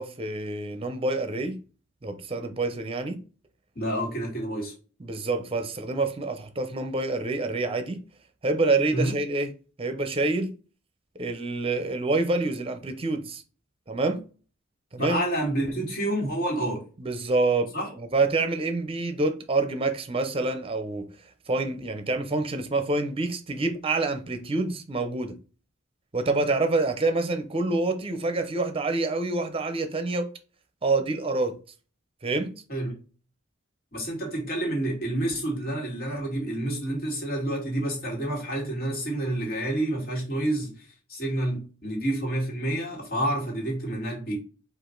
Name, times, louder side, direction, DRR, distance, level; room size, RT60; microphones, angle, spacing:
voice 1, 0.0-1.6 2.0-3.2 5.0-8.0 8.4-9.5 9.8-10.5 11.2-13.4 13.9-14.2 14.9-15.2 17.0-21.1 21.5-25.4 26.1-30.3 30.8-31.6 32.2-32.5, right 3 dB, 30° right, 0.6 m, -27 dB
voice 2, 3.8-4.7 8.9-9.1 15.0-16.8 17.7-17.9 32.7-33.0 33.9-40.7 41.1-44.4, right 1 dB, 50° left, 2.0 m, -28 dB
5.0 x 2.5 x 3.8 m
head